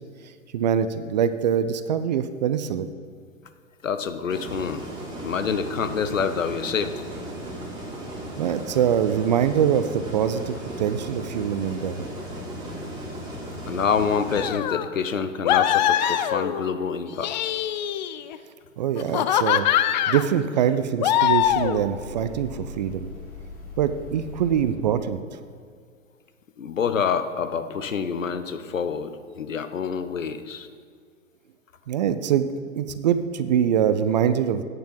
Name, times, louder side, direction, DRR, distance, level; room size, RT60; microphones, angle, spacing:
voice 1, 0.5-2.9 8.4-12.1 18.8-19.7 20.1-23.1 23.8-25.2 31.9-32.5 32.7-34.6, right 9 dB, 35° right, 11 dB, 0.4 m, -23 dB
voice 2, 3.8-4.9 5.2-6.9 13.7-17.5 26.6-30.7, left 6 dB, 75° left, 10 dB, 0.9 m, -27 dB
sound 1, 4.3-14.5, right 1 dB, 10° right, 2.9 m, -36 dB
sound 2, 14.4-14.9 15.5-16.7 17.1-18.4 19.0-20.3 21.0-21.9, left 11 dB, 35° left, 0.4 m, -23 dB
sound 3, 21.3-25.0, left 3 dB, 20° left, 2.1 m, -41 dB
9.0 x 6.7 x 7.3 m, 2.1 s
figure-of-eight pair, 105°, 40 cm